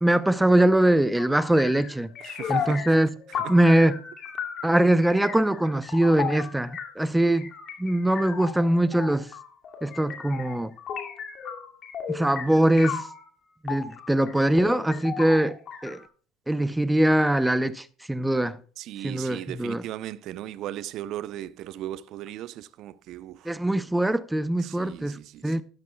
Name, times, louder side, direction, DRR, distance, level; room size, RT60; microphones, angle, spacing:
voice 1, 0.0-2.1 2.5-4.0 4.6-7.5 7.8-9.3 9.8-10.7 12.1-13.1 13.6-15.6 15.8-16.0 16.5-18.6 19.0-19.8 23.5-25.6, right 1 dB, 5° right, 0.6 m, -22 dB
sound 1, 1.2-13.3 13.7-16.1, left 7 dB, 45° left, 2.2 m, -35 dB
voice 2, 2.2-2.9 3.4-3.6 18.8-23.5 24.6-25.6, right 13 dB, 55° right, 0.6 m, -37 dB
12.5 x 12.0 x 2.3 m
hypercardioid pair, 70°, 0 cm